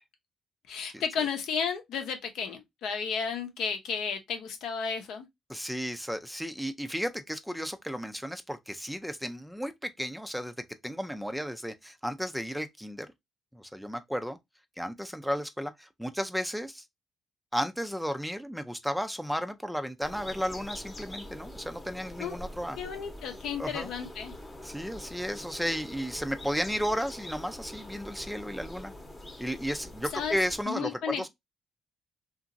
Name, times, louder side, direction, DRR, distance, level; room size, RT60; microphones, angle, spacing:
voice 1, 0.7-5.2 22.2-22.4 22.8-24.3 30.1-30.4 30.7-31.3, left 6 dB, 80° left, 0.7 m, -33 dB
voice 2, 5.5-10.5 10.8-13.1 13.5-14.4 14.8-16.8 17.5-22.8 23.6-23.9 24.6-28.9 29.4-31.3, equal, ahead, 0.3 m, -33 dB
sound 1, 20.0-30.6, left 1 dB, 20° left, 0.8 m, -44 dB
2.9 x 2.5 x 2.5 m
cardioid pair, 90°, 0 cm